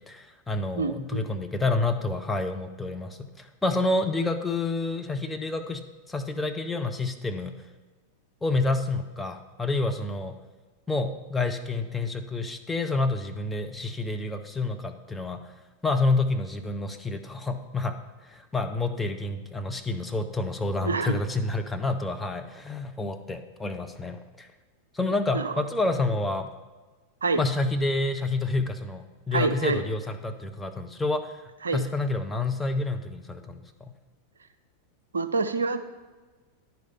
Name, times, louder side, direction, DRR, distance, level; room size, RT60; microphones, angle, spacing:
voice 1, 0.0-5.8 6.1-7.6 8.4-10.4 10.9-15.4 15.8-18.0 18.2-24.5 24.9-26.5 27.4-33.9, left 2 dB, 10° left, 5 dB, 0.7 m, -28 dB
voice 2, 0.8-1.2 20.8-21.2 25.3-25.5 27.2-27.4 29.3-29.8 31.6-31.8 35.1-35.8, right 4 dB, 75° right, 9 dB, 0.5 m, -26 dB
10.5 x 5.0 x 5.6 m, 1.3 s
figure-of-eight pair, 90°, 0 cm